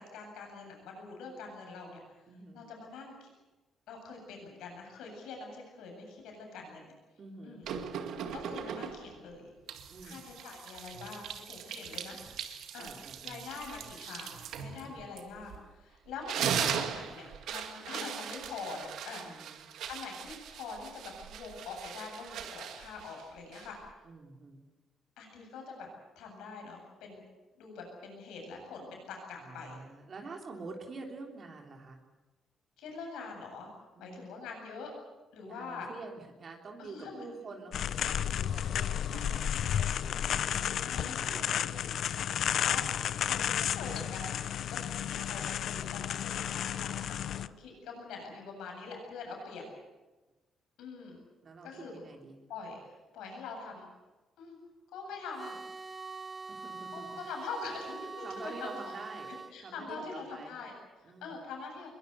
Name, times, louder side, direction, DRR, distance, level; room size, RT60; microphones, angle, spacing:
voice 1, 0.0-2.0 2.5-3.3 3.9-6.9 7.4-7.6 8.3-9.5 10.0-12.2 12.7-12.9 13.2-19.3 19.9-23.8 25.2-25.9 26.2-27.2 27.6-29.8 32.8-33.7 34.0-34.9 35.3-35.9 36.8-37.2 39.0-39.4 40.8-41.4 42.5-49.6 50.8-51.2 51.6-52.0 52.5-52.8 53.1-53.9 54.4-54.6 54.9-55.6 56.9-58.9 59.5-61.9, left 4 dB, 90° left, 2 dB, 7.9 m, -44 dB
voice 2, 2.3-2.6 7.2-7.6 9.9-10.3 12.8-13.4 14.8-15.1 19.2-19.7 24.0-24.6 29.4-32.0 34.0-34.2 35.4-40.7 41.0-42.1 51.4-52.4 56.5-57.2 58.2-59.3 59.6-60.5 61.0-61.5, right 3 dB, 50° right, 2 dB, 3.5 m, -47 dB
sound 1, 7.6-9.2 9.7-15.7 16.1-23.9, right 8 dB, 80° right, 2.0 m, -39 dB
sound 2, 37.7-47.5, left 9 dB, 70° left, 0.7 m, -32 dB
sound 3, 55.4-59.6, right 4 dB, 30° right, 0.7 m, -44 dB
22.0 x 20.5 x 8.3 m, 1.2 s
cardioid pair, 90°, 0 cm